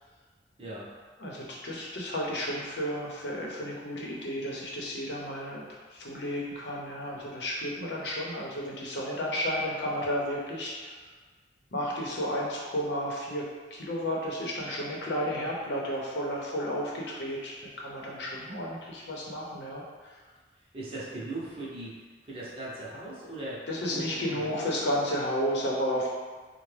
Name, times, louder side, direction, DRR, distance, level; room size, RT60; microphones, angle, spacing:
voice 1, 1.2-5.6 5.9-10.9 11.7-20.2 23.7-26.1, equal, 70° left, -3 dB, 0.8 m, -32 dB
voice 2, 20.5-24.5, right 2 dB, 30° right, -6 dB, 0.7 m, -39 dB
4.6 x 2.2 x 3.3 m, 1.4 s
head